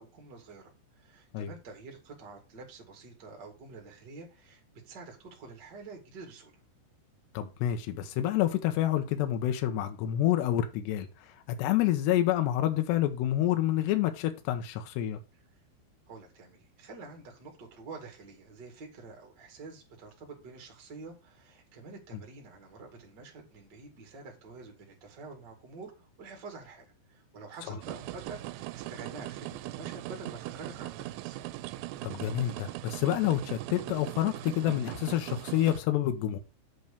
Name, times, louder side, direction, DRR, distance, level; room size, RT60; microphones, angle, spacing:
voice 1, 0.0-6.5 16.1-31.4, right 3 dB, 40° right, 1.5 m, -48 dB
voice 2, 7.3-15.2 32.0-36.4, left 12 dB, 80° left, 2.5 m, -28 dB
sound 1, 27.8-35.8, right 16 dB, 85° right, 2.9 m, -40 dB
8.2 x 4.6 x 6.7 m
omnidirectional pair, 5.8 m